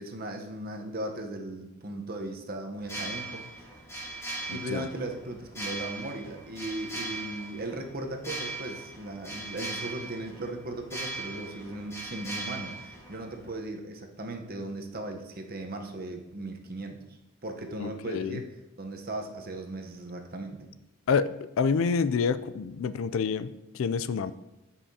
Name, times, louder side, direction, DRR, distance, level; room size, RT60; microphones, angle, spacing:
voice 1, 0.0-3.7 4.5-17.0 17.4-20.7, right 1 dB, 45° right, 4 dB, 0.9 m, -37 dB
sound 1, 2.8-13.6, right 2 dB, 10° left, 1.1 m, -39 dB
voice 2, 4.5-4.9 17.8-18.4 21.1-24.3, left 5 dB, 65° left, 14 dB, 0.4 m, -28 dB
13.0 x 5.7 x 2.8 m, 0.96 s
head